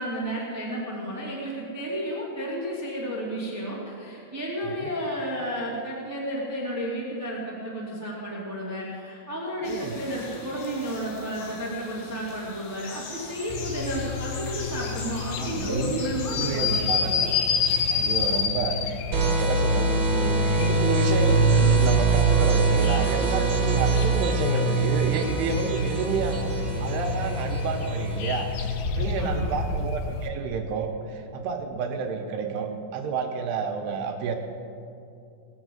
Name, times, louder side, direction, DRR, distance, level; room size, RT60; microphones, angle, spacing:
voice 1, 0.0-17.3 29.2-29.7, equal, 10° right, -4 dB, 0.9 m, -32 dB
voice 2, 4.6-5.0 9.6-10.0 15.4-17.1 17.9-34.4, right 5 dB, 80° right, 4 dB, 2.7 m, -30 dB
sound 1, 9.6-18.4, left 4 dB, 65° left, 3.5 m, -41 dB
sound 2, 13.5-30.3, left 6 dB, 85° left, 1.9 m, -30 dB
sound 3, 19.1-28.8, right 3 dB, 50° right, 2.1 m, -23 dB
20.0 x 7.1 x 7.8 m, 2.5 s
omnidirectional pair, 5.2 m